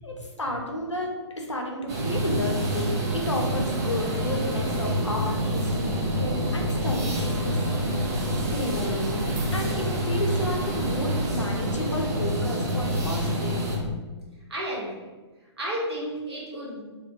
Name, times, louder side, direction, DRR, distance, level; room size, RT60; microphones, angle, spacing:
voice 1, 0.0-8.1 8.4-9.2 9.5-13.6, left 1 dB, 90° left, 0 dB, 0.5 m, -32 dB
sound 1, 1.9-13.8, equal, 35° right, 0.5 m, -27 dB
voice 2, 14.5-15.0 15.6-16.8, equal, 65° right, -5 dB, 0.9 m, -32 dB
2.2 x 2.1 x 2.6 m, 1.2 s
figure-of-eight pair, 125°, 15 cm